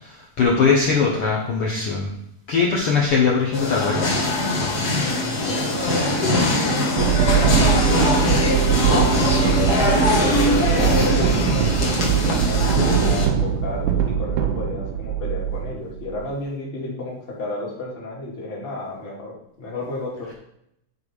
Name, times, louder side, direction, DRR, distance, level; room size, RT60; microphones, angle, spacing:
voice 1, 0.0-2.1 2.5-4.3, left 5 dB, 85° left, -2 dB, 1.2 m, -21 dB
sound 1, 3.5-13.3, left 2 dB, 50° left, 1.1 m, -21 dB
voice 2, 4.9-8.7 8.9-20.3, left 2 dB, 20° left, -4 dB, 1.7 m, -32 dB
sound 2, 7.0-16.3, right 9 dB, 80° right, 1.8 m, -21 dB
9.1 x 4.7 x 4.9 m, 0.76 s
omnidirectional pair, 4.2 m